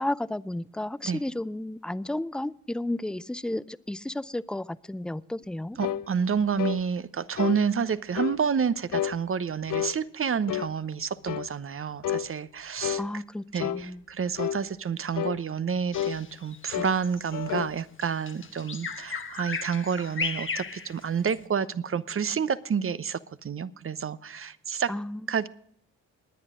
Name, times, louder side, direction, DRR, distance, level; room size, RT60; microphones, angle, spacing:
voice 1, 0.0-5.8 13.0-14.0 24.9-25.3, left 1 dB, ahead, 0.4 m, -33 dB
sound 1, 5.8-6.1 6.6-6.8 7.4-7.6 8.2-8.4 8.9-9.2 9.7-10.0 10.5-10.7 11.3-11.5 12.0-12.3 12.8-13.1 13.6-13.8 14.4-14.6 15.1-15.4 15.9-16.2 16.7-17.0 17.3-17.8, left 11 dB, 55° left, 0.6 m, -30 dB
voice 2, 5.8-13.0 13.5-24.9 25.3-25.5, right 6 dB, 35° right, 0.8 m, -29 dB
Bird vocalization bird call bird song, 15.9-21.4, left 4 dB, 30° left, 1.1 m, -36 dB
19.5 x 9.9 x 3.7 m
hypercardioid pair, 50°, 40 cm